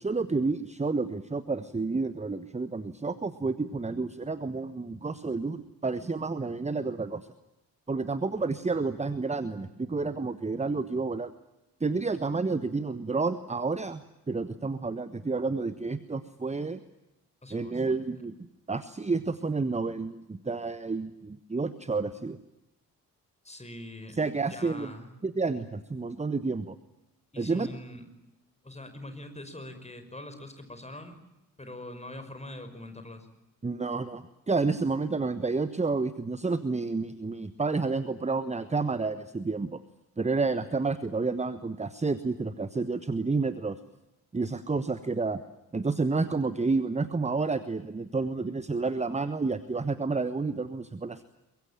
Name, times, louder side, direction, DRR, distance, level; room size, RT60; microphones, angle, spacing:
voice 1, 0.0-7.3 7.9-11.3 11.8-14.0 14.3-16.8 17.5-18.3 18.7-22.4 24.1-24.9 25.2-26.8 27.4-27.7 33.6-39.8 40.2-43.8 44.3-45.4 45.7-51.2, right 3 dB, 15° right, 13 dB, 1.3 m, -30 dB
voice 2, 17.4-18.0 23.4-25.1 27.3-28.0 28.6-31.1 31.6-33.3, left 1 dB, 15° left, 8 dB, 5.7 m, -43 dB
24.0 x 22.5 x 8.9 m, 0.93 s
figure-of-eight pair, 40°, 47 cm